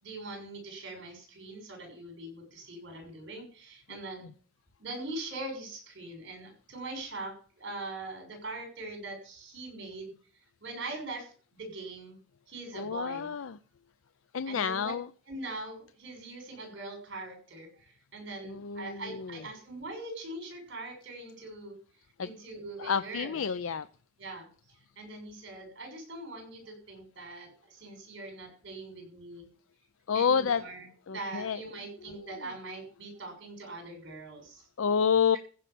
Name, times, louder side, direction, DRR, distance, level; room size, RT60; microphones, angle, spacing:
voice 1, 0.0-4.3 4.8-10.1 10.6-12.2 12.5-13.3 14.5-14.9 15.3-21.7 22.2-23.4 24.2-24.5 25.0-29.5 30.1-34.7, right 2 dB, 60° right, 4 dB, 6.3 m, -42 dB
voice 2, 12.7-13.6 14.3-15.1 18.4-19.4 22.2-22.3 22.8-23.9 30.1-30.6 31.1-31.6 32.0-32.4 34.8-35.4, left 7 dB, 75° left, 13 dB, 0.5 m, -29 dB
15.0 x 5.6 x 8.3 m, 0.41 s
head